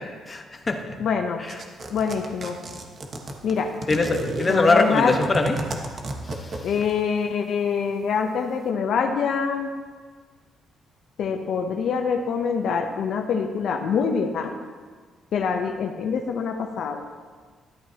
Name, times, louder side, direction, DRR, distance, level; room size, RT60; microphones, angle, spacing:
voice 1, 0.3-1.0 1.4-1.5 3.9-5.6, left 3 dB, 30° left, 4 dB, 1.2 m, -22 dB
voice 2, 1.0-1.4 1.9-2.6 3.4-3.7 4.5-5.2 6.6-9.7 11.2-14.5 15.3-17.0, left 6 dB, 70° left, 4 dB, 0.7 m, -25 dB
sound 1, 1.5-7.0, right 2 dB, 45° right, 1.3 m, -32 dB
12.0 x 10.0 x 2.9 m, 1.5 s
cardioid pair, 90°, 0 cm